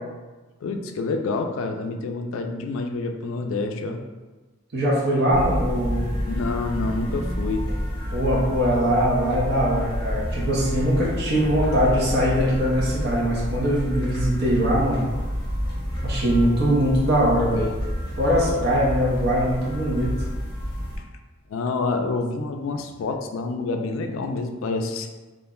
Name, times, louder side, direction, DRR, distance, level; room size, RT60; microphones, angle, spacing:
voice 1, 0.6-4.0 6.2-7.7 17.5-17.6 21.5-25.1, left 3 dB, 70° left, 5 dB, 0.3 m, -28 dB
voice 2, 4.7-6.0 8.1-15.0 16.0-17.7 18.2-20.1, equal, 50° right, -5 dB, 0.7 m, -22 dB
sound 1, 5.3-21.0, equal, 20° left, 0.9 m, -28 dB
2.4 x 2.1 x 3.6 m, 1.2 s
head